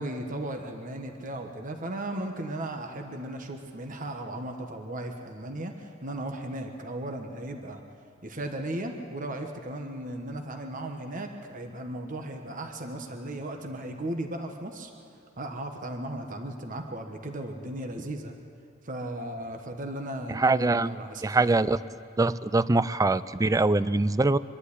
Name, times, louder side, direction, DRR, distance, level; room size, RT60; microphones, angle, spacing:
voice 1, 0.0-7.8 8.2-14.9 15.4-18.3 18.8-21.5, right 1 dB, 40° right, 4 dB, 1.3 m, -36 dB
voice 2, 20.3-21.8 22.2-24.4, right 2 dB, 15° right, 16 dB, 0.4 m, -23 dB
24.5 x 11.5 x 9.9 m, 2.5 s
head